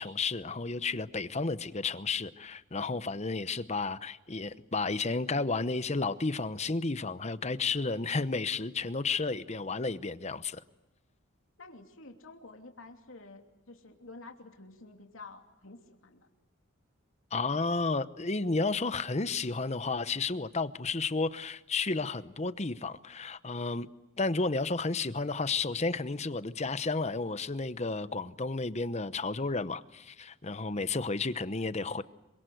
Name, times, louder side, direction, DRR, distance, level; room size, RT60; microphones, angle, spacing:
voice 1, 0.0-10.6 17.3-23.9 24.2-32.0, left 3 dB, 30° left, 14 dB, 0.9 m, -32 dB
voice 2, 11.6-16.3, left 3 dB, 70° left, 3 dB, 3.0 m, -50 dB
26.5 x 24.5 x 7.9 m, 1.0 s
head